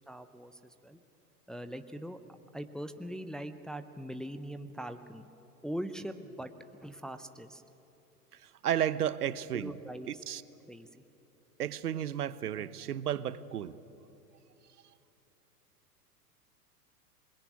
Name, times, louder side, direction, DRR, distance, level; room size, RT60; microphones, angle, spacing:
voice 1, 0.1-1.0 1.5-2.2 2.5-5.3 5.6-7.6 9.5-10.2 10.7-11.0, equal, ahead, 8 dB, 0.5 m, -41 dB
voice 2, 8.3-9.7 10.1-10.4 11.6-13.8, right 10 dB, 70° right, 16 dB, 1.0 m, -33 dB
26.5 x 21.5 x 9.4 m, 2.9 s
figure-of-eight pair, 100°, 47 cm